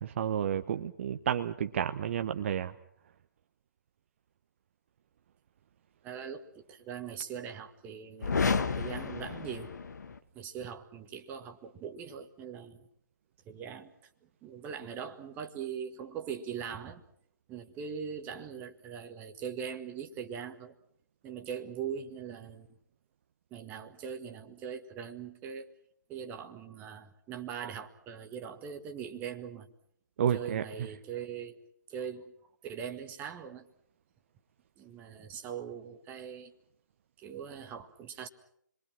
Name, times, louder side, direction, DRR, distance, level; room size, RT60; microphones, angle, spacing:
voice 1, 0.0-2.7 30.2-30.6, right 9 dB, 40° right, 9 dB, 1.0 m, -31 dB
voice 2, 6.0-8.3 8.8-9.7 10.3-12.9 13.5-13.9 14.2-17.0 17.5-20.8 21.2-22.7 23.5-25.7 26.1-29.7 30.3-31.6 31.9-32.3 32.6-33.7 34.8-36.5 37.2-38.3, right 7 dB, 15° right, 6 dB, 1.8 m, -41 dB
sound 1, 8.2-10.2, left 5 dB, 60° left, 1.8 m, -31 dB
30.0 x 23.0 x 6.2 m, 0.69 s
figure-of-eight pair, 135°, 11 cm